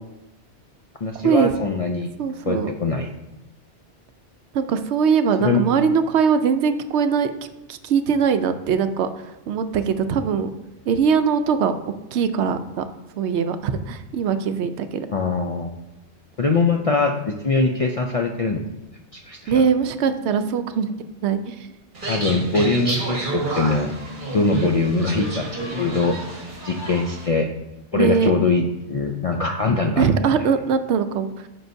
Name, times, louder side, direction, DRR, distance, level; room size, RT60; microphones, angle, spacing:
voice 1, 1.0-2.1 2.5-3.1 5.4-5.6 15.1-15.7 16.4-18.6 19.1-19.5 22.1-23.9 24.3-27.5 27.9-30.1 30.4-30.5, left 3 dB, 55° left, 3 dB, 0.4 m, -22 dB
voice 2, 2.2-2.7 4.5-7.3 7.7-10.5 10.9-12.8 13.2-15.1 19.5-20.9 21.2-21.7 27.9-28.3 30.0-31.5, right 6 dB, 75° right, 10 dB, 0.8 m, -21 dB
sound 1, 21.9-27.3, right 2 dB, 45° right, 1.5 m, -30 dB
9.4 x 6.2 x 2.7 m, 0.95 s
omnidirectional pair, 1.2 m